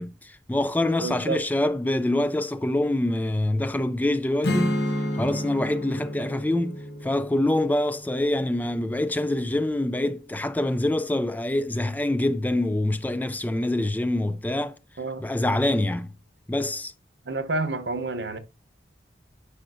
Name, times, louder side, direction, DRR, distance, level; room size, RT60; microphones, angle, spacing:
voice 1, 0.0-4.8 5.1-14.8 15.2-16.1 16.5-16.9, left 1 dB, 10° left, 0.3 m, -25 dB
voice 2, 1.0-1.4 15.0-15.2 17.3-18.4, right 3 dB, 70° right, 0.8 m, -29 dB
Strum, 4.4-9.8, left 1 dB, 70° left, 1.0 m, -31 dB
9.9 x 5.6 x 2.5 m
head